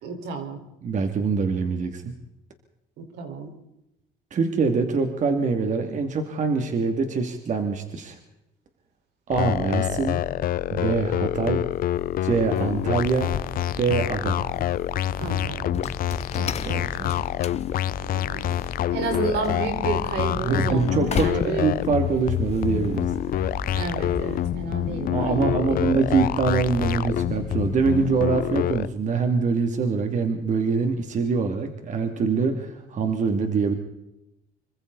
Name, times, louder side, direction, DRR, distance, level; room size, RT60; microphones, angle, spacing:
voice 1, 0.0-0.6 3.0-3.5 15.2-15.7 18.0-21.7 23.7-25.7, right 4 dB, 80° right, 4 dB, 5.0 m, -31 dB
voice 2, 0.8-2.1 4.3-8.2 9.3-10.2 10.7-11.6 12.2-13.3 13.8-14.5 16.3-17.2 20.4-23.1 25.1-33.7, right 4 dB, 45° right, 5 dB, 2.7 m, -24 dB
sound 1, 9.3-28.9, left 12 dB, 60° left, 0.7 m, -27 dB
sound 2, 11.7-24.5, left 8 dB, 40° left, 1.0 m, -38 dB
sound 3, 13.1-28.1, left 1 dB, 5° left, 3.4 m, -39 dB
27.0 x 24.5 x 4.2 m, 0.87 s
cardioid pair, 110°, 17 cm